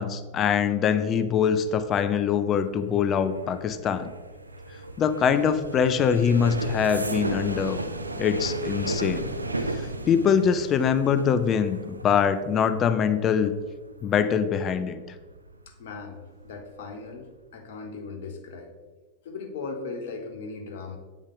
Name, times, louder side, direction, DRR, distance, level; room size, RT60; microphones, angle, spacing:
voice 1, 0.0-4.1 5.0-7.8 8.2-9.3 10.1-13.5 14.0-15.0, left 7 dB, 30° left, 10 dB, 0.4 m, -23 dB
sound 1, 1.3-16.0 16.3-16.7 17.0-17.4, right 2 dB, 80° right, 0.4 m, -35 dB
voice 2, 15.7-18.7 19.2-21.0, left 4 dB, 55° left, 4 dB, 0.9 m, -38 dB
8.0 x 3.6 x 3.7 m, 1.3 s
figure-of-eight pair, 90°, 0 cm